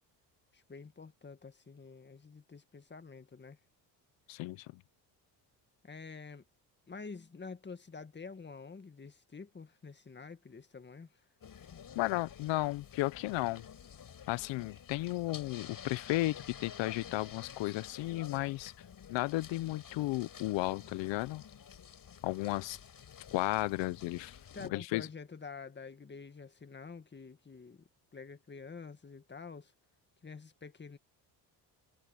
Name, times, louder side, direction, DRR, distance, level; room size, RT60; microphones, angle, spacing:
voice 1, 0.5-3.6 5.8-6.4 6.9-11.2 24.5-29.7 30.2-31.0, left 5 dB, 25° left, 1.9 m, -48 dB
voice 2, 4.3-4.7 11.9-13.6 14.3-18.7 19.1-21.4 22.2-22.8 23.3-24.4 24.7-25.1, left 18 dB, 80° left, 0.8 m, -34 dB
sound 1, 11.4-24.7, left 8 dB, 50° left, 6.5 m, -51 dB
cardioid pair, 85°, 44 cm